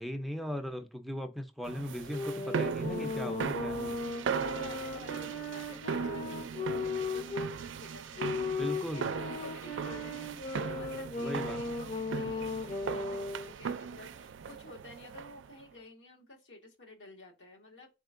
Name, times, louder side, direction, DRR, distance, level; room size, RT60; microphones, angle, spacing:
voice 1, 0.0-4.0 8.5-9.1 11.2-11.6, equal, ahead, 0.5 m, -38 dB
sound 1, 1.6-15.5, right 6 dB, 90° right, 0.4 m, -38 dB
sound 2, 2.1-7.5 8.2-13.5, left 3 dB, 45° left, 0.8 m, -37 dB
voice 2, 4.4-17.9, left 2 dB, 80° left, 1.5 m, -51 dB
4.3 x 3.5 x 2.5 m
head